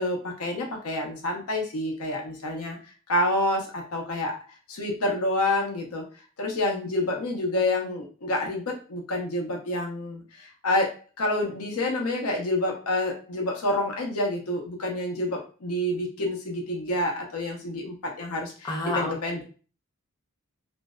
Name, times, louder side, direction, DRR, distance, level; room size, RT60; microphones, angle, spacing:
voice 1, 0.0-2.8 3.1-4.3 4.7-6.1 6.4-10.9 11.2-19.4, left 1 dB, 85° left, 1 dB, 0.7 m, -28 dB
voice 2, 18.6-19.4, left 2 dB, 20° left, -2 dB, 0.6 m, -30 dB
2.6 x 2.1 x 2.3 m, 0.37 s
head